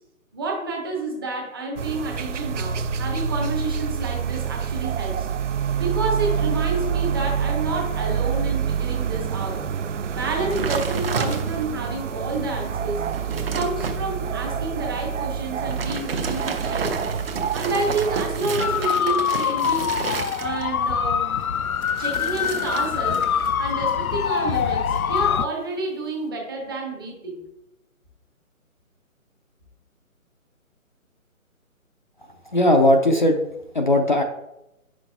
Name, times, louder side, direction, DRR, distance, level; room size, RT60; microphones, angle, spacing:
voice 1, 0.3-5.3 5.7-9.6 10.1-13.1 13.4-17.0 17.5-20.0 20.4-21.4 22.0-23.3 23.6-27.4, right 3 dB, 15° right, 0 dB, 0.8 m, -29 dB
sound 1, 1.8-18.9, right 7 dB, 60° right, 0.5 m, -27 dB
sound 2, 10.5-11.8 12.3-12.4 12.9-14.0 15.6-20.8 21.8-23.5 23.8-24.2, right 4 dB, 45° right, 0.9 m, -31 dB
sound 3, 18.6-25.5, left 8 dB, 80° left, 0.5 m, -24 dB
voice 2, 32.5-33.4 33.7-34.2, left 1 dB, 35° left, 3 dB, 0.5 m, -17 dB
9.1 x 6.0 x 2.3 m, 0.87 s
figure-of-eight pair, 145°, 42 cm